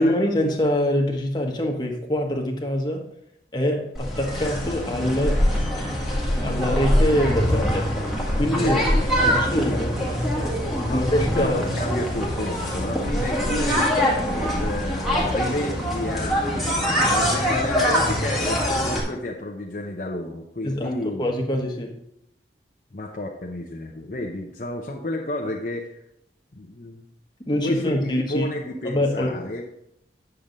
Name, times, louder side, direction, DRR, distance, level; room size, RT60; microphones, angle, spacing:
voice 1, 0.0-3.1 3.5-5.5 6.4-8.0 8.3-8.8 9.2-9.9 10.9-11.6 20.6-22.0 27.4-28.5 28.8-29.4, equal, 25° left, 1 dB, 1.2 m, -24 dB
sound 1, 3.9-19.0, equal, ahead, 1.7 m, -23 dB
voice 2, 10.8-13.9 14.1-21.2 22.9-25.9 26.5-27.1 27.6-29.6, left 1 dB, 50° left, 0 dB, 0.8 m, -31 dB
8.8 x 6.9 x 4.0 m, 0.77 s
head